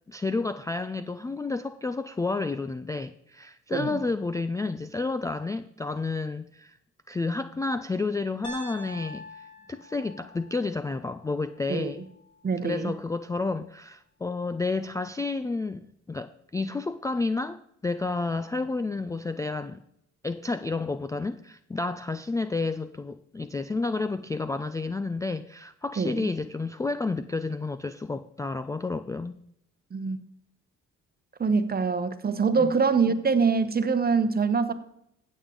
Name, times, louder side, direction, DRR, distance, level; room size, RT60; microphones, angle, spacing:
voice 1, 0.1-6.8 7.1-12.1 12.6-19.8 20.2-29.4 32.6-32.7, left 3 dB, 10° left, 0.3 m, -31 dB
Piano, 8.4-12.5, left 1 dB, 75° left, 2.6 m, -45 dB
voice 2, 12.4-12.9 26.0-26.3 29.9-30.2 31.4-34.7, right 5 dB, 30° right, 1.0 m, -24 dB
15.5 x 7.3 x 3.8 m
cardioid pair, 90°, 30 cm